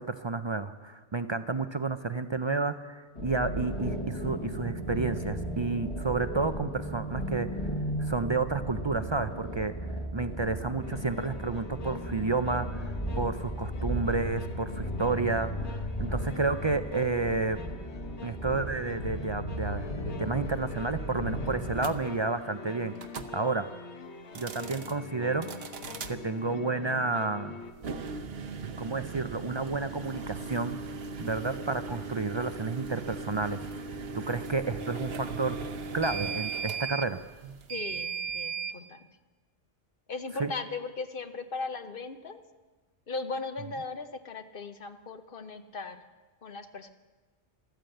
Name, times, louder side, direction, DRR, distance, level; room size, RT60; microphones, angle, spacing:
voice 1, 0.0-7.5 8.0-9.7 10.1-17.6 18.2-22.9 23.3-23.7 24.3-25.5 26.1-27.6 28.8-30.8 31.2-33.6 34.1-35.6 35.9-37.2 40.4-40.5, right 3 dB, 45° right, 10 dB, 0.3 m, -31 dB
sound 1, 3.1-22.0, equal, 25° left, 1.3 m, -35 dB
sound 2, 10.8-27.7, left 6 dB, 75° left, 1.4 m, -44 dB
sound 3, 21.8-21.9 23.0-23.3 24.2-24.9 25.4-26.1 27.7-38.8, right 4 dB, 60° right, 1.1 m, -37 dB
voice 2, 37.7-39.1 40.1-42.4 43.1-46.0 46.4-46.9, left 3 dB, 55° left, 8 dB, 1.0 m, -38 dB
14.0 x 13.0 x 7.8 m, 1.3 s
omnidirectional pair, 1.2 m